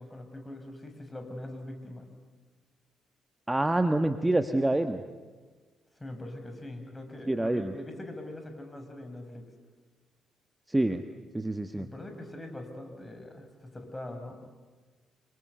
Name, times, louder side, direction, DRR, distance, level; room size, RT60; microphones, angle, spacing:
voice 1, 0.0-2.1 5.9-9.5 11.8-14.4, left 1 dB, 20° left, 5 dB, 6.2 m, -42 dB
voice 2, 3.5-5.0 7.3-7.7 10.7-11.0 11.3-11.9, right 1 dB, 15° right, 8 dB, 1.3 m, -26 dB
27.5 x 24.0 x 8.2 m, 1.4 s
figure-of-eight pair, 40°, 0 cm